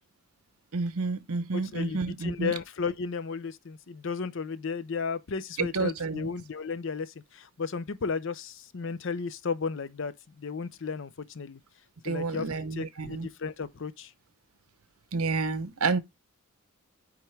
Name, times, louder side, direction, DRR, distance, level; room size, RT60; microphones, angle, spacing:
voice 1, 0.7-2.5 5.6-6.3 12.0-13.3 15.1-16.0, right 4 dB, 80° right, 0.8 m, -30 dB
voice 2, 1.5-11.6 12.0-14.1, left 5 dB, 55° left, 0.6 m, -34 dB
9.1 x 3.6 x 3.2 m
head